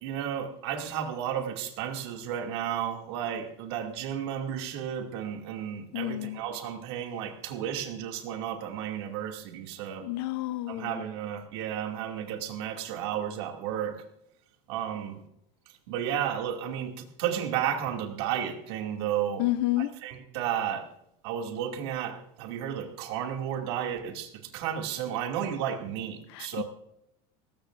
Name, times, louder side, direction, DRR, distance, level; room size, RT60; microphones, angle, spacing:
voice 1, 0.0-10.1 10.7-14.0 14.7-15.2 15.9-19.5 19.8-20.9 21.2-26.6, right 9 dB, 65° right, 2.5 m, -33 dB
voice 2, 5.9-6.4 10.0-11.0 19.4-19.9 26.3-26.6, left 17 dB, 60° left, 0.7 m, -30 dB
20.0 x 17.5 x 2.6 m
cardioid pair, 180°, 15 cm